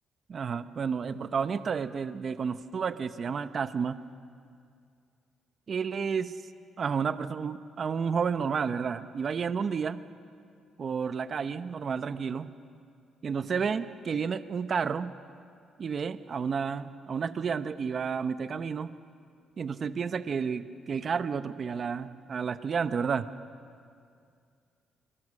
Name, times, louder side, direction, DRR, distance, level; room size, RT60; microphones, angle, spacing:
voice 1, 0.3-4.0 5.7-6.3 6.8-10.0 10.8-12.5 13.2-15.1 15.8-18.9 19.6-23.3, right 6 dB, 50° right, 12 dB, 0.8 m, -31 dB
25.0 x 22.5 x 6.5 m, 2.3 s
cardioid pair, 90°, 0 cm